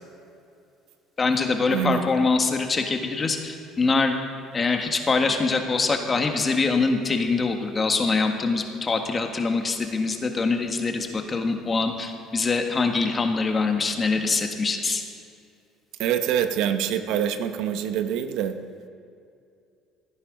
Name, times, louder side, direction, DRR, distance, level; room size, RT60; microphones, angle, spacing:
voice 1, 1.2-4.2 4.5-15.0, left 4 dB, 30° left, 4 dB, 1.7 m, -24 dB
voice 2, 1.7-2.1 16.0-18.5, right 9 dB, 75° right, 8 dB, 0.9 m, -25 dB
16.0 x 10.0 x 5.4 m, 2.5 s
cardioid pair, 100°, 0 cm